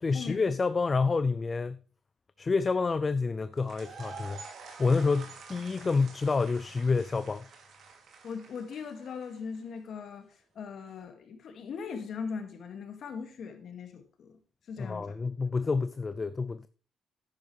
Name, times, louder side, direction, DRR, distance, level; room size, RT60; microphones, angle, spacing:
voice 1, 0.0-1.8 2.4-4.4 4.8-7.5 14.8-16.7, left 4 dB, 30° left, 0.4 m, -28 dB
sound 1, 3.6-9.6, right 4 dB, 65° right, 2.7 m, -48 dB
voice 2, 8.2-10.3 10.6-14.4 14.7-15.0, left 5 dB, 65° left, 2.1 m, -39 dB
11.0 x 9.7 x 3.3 m
cardioid pair, 90°, 0 cm